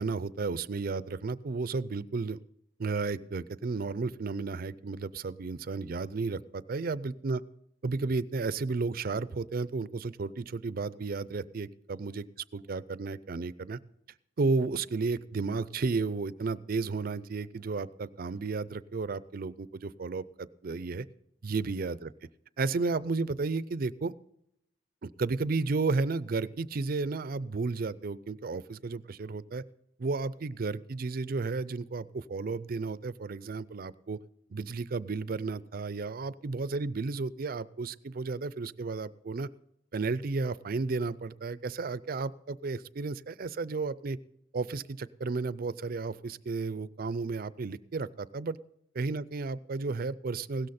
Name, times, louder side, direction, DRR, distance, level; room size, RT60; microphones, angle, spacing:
voice 1, 0.0-2.4 2.8-7.4 7.8-12.3 12.5-13.8 14.4-21.1 21.4-22.1 22.6-24.1 25.0-29.6 30.0-34.2 34.5-39.5 39.9-44.2 44.5-48.6 48.9-50.7, right 4 dB, 50° right, 18 dB, 0.5 m, -33 dB
16.5 x 13.0 x 4.2 m, 0.76 s
head